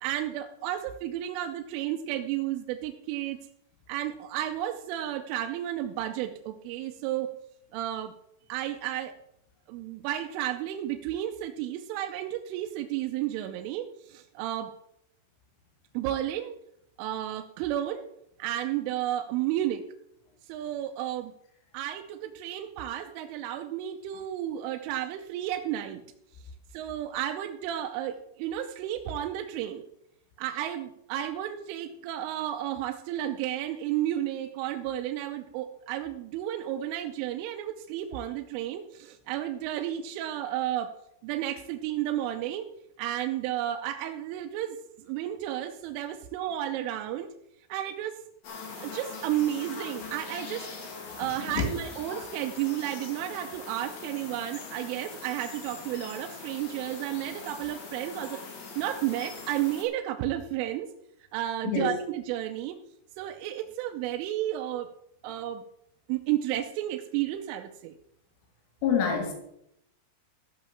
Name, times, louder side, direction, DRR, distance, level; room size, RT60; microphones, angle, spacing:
voice 1, 0.0-3.4 3.9-7.3 7.7-8.1 8.5-9.1 9.7-14.7 15.9-16.5 17.0-18.0 18.4-19.8 20.5-21.3 21.7-26.0 26.7-29.8 30.4-40.9 41.2-42.7 43.0-44.8 45.1-47.3 47.7-48.2 48.8-50.7 51.1-58.4 58.8-60.9 61.3-62.8 63.2-64.9 65.2-65.6 66.1-67.9, right 12 dB, 85° right, 5 dB, 3.2 m, -32 dB
sound 1, 48.4-59.9, left 4 dB, 50° left, 3.4 m, -42 dB
voice 2, 61.6-62.0 68.8-69.3, left 6 dB, 85° left, 2 dB, 4.5 m, -26 dB
14.0 x 5.9 x 7.1 m, 0.77 s
omnidirectional pair, 5.6 m